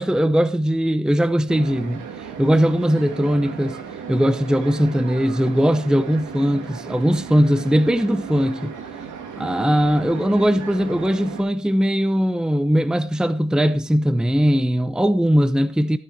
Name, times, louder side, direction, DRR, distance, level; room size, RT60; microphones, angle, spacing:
voice 1, 0.0-2.1 2.4-3.8 4.1-8.7 9.4-16.0, equal, ahead, 0.8 m, -19 dB
sound 1, 1.5-11.4, right 7 dB, 80° right, 2.6 m, -35 dB
15.5 x 9.2 x 4.7 m
cardioid pair, 90°, 30 cm